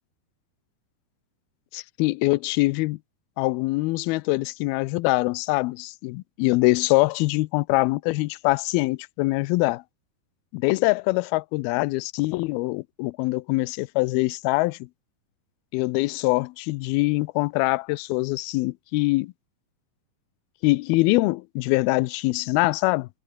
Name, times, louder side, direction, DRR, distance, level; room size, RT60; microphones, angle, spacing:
voice 1, 1.7-3.0 3.4-9.8 10.5-14.8 15.7-19.3 20.6-23.1, left 22 dB, 80° left, 2.4 m, -23 dB
omnidirectional pair, 4.6 m